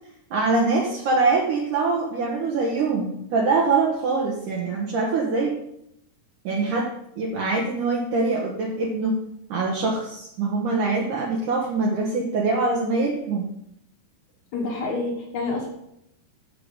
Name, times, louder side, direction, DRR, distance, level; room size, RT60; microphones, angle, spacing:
voice 1, 0.3-5.5 6.4-9.2 9.5-13.5, right 3 dB, 65° right, -2 dB, 2.3 m, -24 dB
voice 2, 14.5-15.7, left 3 dB, 60° left, 0 dB, 2.3 m, -28 dB
8.1 x 7.0 x 5.0 m, 0.76 s
omnidirectional pair, 4.5 m